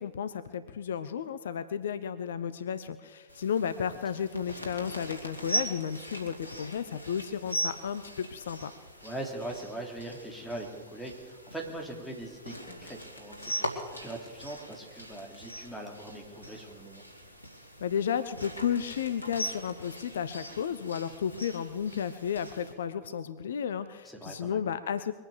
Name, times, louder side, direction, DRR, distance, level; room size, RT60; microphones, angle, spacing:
voice 1, 0.0-8.7 17.8-25.1, left 8 dB, 65° left, 13 dB, 0.6 m, -33 dB
sound 1, 3.3-22.7, right 1 dB, 90° right, 2.4 m, -40 dB
voice 2, 9.0-17.0 24.0-24.6, right 1 dB, ahead, -2 dB, 3.3 m, -41 dB
22.5 x 8.9 x 6.7 m, 1.4 s
figure-of-eight pair, 90°, 0 cm